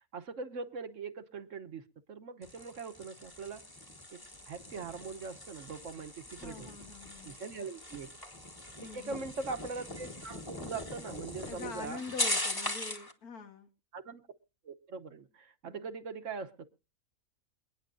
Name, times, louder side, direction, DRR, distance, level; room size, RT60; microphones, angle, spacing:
voice 1, 0.0-3.6 4.1-4.2 4.5-6.7 7.2-8.1 8.8-12.0 13.9-14.2 14.6-16.6, right 4 dB, 60° right, 9 dB, 1.3 m, -42 dB
sound 1, 2.4-13.1, left 1 dB, 15° left, 1.4 m, -40 dB
voice 2, 6.4-7.3 8.8-9.3 11.5-13.7 15.6-15.9, left 4 dB, 85° left, 7 dB, 2.0 m, -45 dB
28.0 x 9.7 x 2.6 m, 0.32 s
omnidirectional pair, 1.5 m